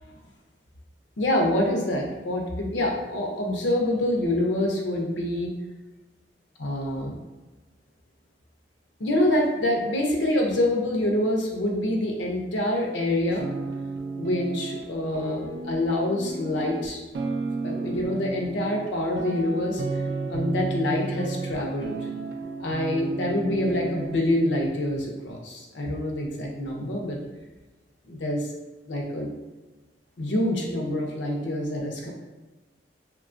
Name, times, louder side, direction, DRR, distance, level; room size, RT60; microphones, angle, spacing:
voice 1, 1.2-5.5 6.6-7.2 9.0-13.5 14.2-17.0 17.6-19.8 20.3-21.9 22.6-27.2 28.1-28.5 28.9-29.3 30.2-32.1, left 1 dB, 85° left, 0 dB, 0.6 m, -26 dB
sound 1, 13.3-14.9 15.1-18.9 19.2-21.5 21.8-24.2, right 3 dB, 75° right, 0.3 m, -33 dB
2.9 x 2.2 x 2.5 m, 1.2 s
head